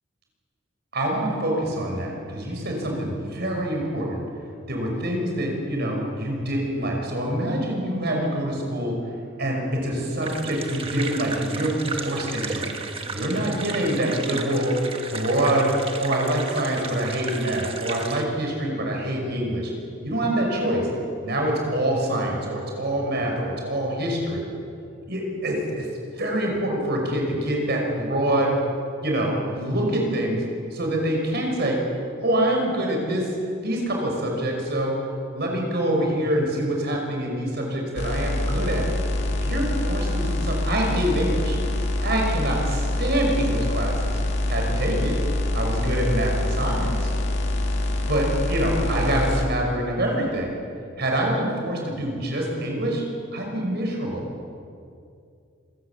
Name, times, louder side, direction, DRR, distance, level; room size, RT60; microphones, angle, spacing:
voice 1, 0.9-4.2 4.7-8.9 9.4-12.7 13.1-14.7 15.1-15.7 16.0-19.7 20.0-20.9 21.2-24.4 25.1-25.9 26.1-28.5 29.0-30.4 30.7-31.8 32.2-33.3 33.6-35.0 35.3-38.9 39.4-41.6 42.0-44.1 44.5-45.2 45.5-47.1 48.0-50.5 51.0-53.0 53.3-54.2, right 1 dB, 55° right, 0 dB, 5.7 m, -25 dB
sound 1, 10.2-18.2, right 4 dB, 30° right, 1.3 m, -34 dB
sound 2, 38.0-49.5, left 1 dB, 60° left, 2.2 m, -25 dB
26.5 x 13.5 x 8.2 m, 2.4 s
head